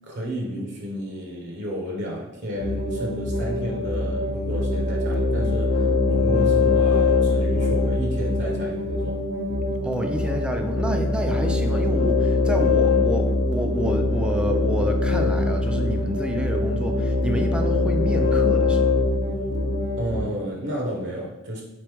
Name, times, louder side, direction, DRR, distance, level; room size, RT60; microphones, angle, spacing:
voice 1, 0.0-9.2 20.0-21.6, equal, 55° right, -1 dB, 0.7 m, -31 dB
sound 1, 2.5-20.2, left 3 dB, 55° left, 0.7 m, -22 dB
voice 2, 9.8-18.9, equal, 5° right, 4 dB, 0.4 m, -28 dB
3.8 x 3.0 x 3.3 m, 1.1 s
head